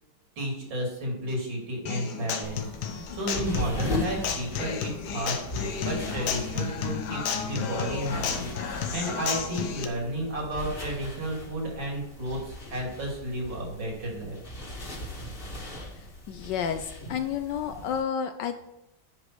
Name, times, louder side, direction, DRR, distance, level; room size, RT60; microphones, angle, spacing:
voice 1, 0.4-14.4, right 1 dB, 70° right, -1 dB, 3.5 m, -32 dB
Human voice / Acoustic guitar, 1.9-9.8, left 7 dB, 90° left, 1.8 m, -32 dB
sound 1, 2.4-18.0, left 1 dB, 30° left, 1.9 m, -39 dB
voice 2, 15.9-18.7, left 8 dB, 75° left, 9 dB, 1.1 m, -31 dB
10.5 x 5.1 x 4.5 m, 0.87 s
omnidirectional pair, 2.2 m